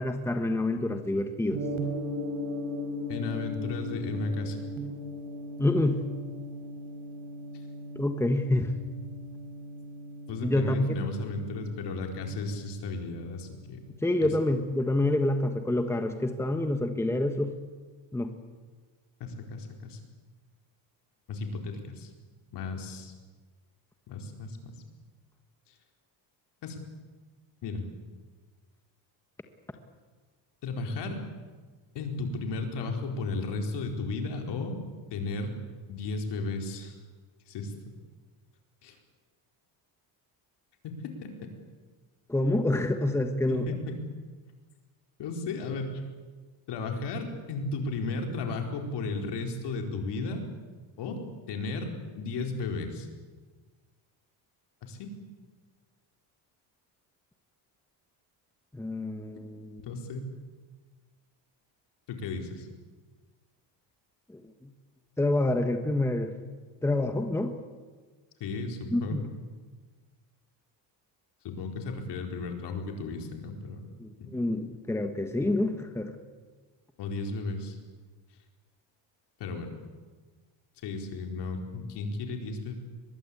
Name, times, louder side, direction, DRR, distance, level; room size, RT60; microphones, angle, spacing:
voice 1, 0.0-1.6 5.6-6.0 7.9-8.7 10.4-10.9 14.0-17.5 18.1-18.3 42.3-43.6 58.7-59.8 64.3-64.7 65.2-66.3 66.8-67.5 68.9-69.3 74.0-76.2, left 1 dB, 5° left, 6 dB, 1.4 m, -27 dB
Gong, 1.5-15.7, equal, 90° right, 5.0 m, -39 dB
voice 2, 3.1-4.6 10.3-13.8 14.2-14.3 19.2-20.0 21.3-22.1 22.5-23.1 24.1-24.7 26.6-26.8 27.6-27.8 30.6-31.2 31.9-34.8 35.1-35.6 35.9-36.9 37.5-37.7 38.8-39.0 40.8-40.9 43.5-44.0 45.2-45.9 46.7-50.4 51.0-51.2 51.5-51.9 52.1-53.1 54.9-55.1 59.8-60.3 62.1-62.7 68.4-69.2 71.4-73.9 74.2-74.3 77.0-77.8 79.4-79.7 80.8-82.7, left 3 dB, 65° left, 3 dB, 4.6 m, -34 dB
23.5 x 21.5 x 8.6 m, 1.4 s
cardioid pair, 145°, 44 cm